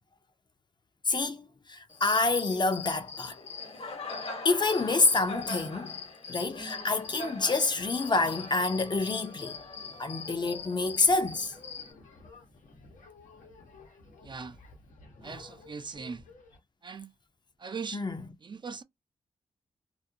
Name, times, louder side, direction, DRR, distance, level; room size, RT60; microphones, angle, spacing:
voice 1, 1.0-3.3 4.4-5.9 6.3-9.6 10.0-11.5 17.9-18.2, left 3 dB, 35° left, 0.6 m, -27 dB
Cricket, 1.9-11.9, left 3 dB, 50° left, 1.1 m, -41 dB
sound 1, 7.8-16.6, left 3 dB, 80° left, 1.0 m, -53 dB
voice 2, 14.2-14.6 15.2-16.2 16.8-17.1 17.6-18.0 18.4-18.8, right 5 dB, 40° right, 0.4 m, -40 dB
2.5 x 2.1 x 2.7 m
cardioid pair, 50°, 13 cm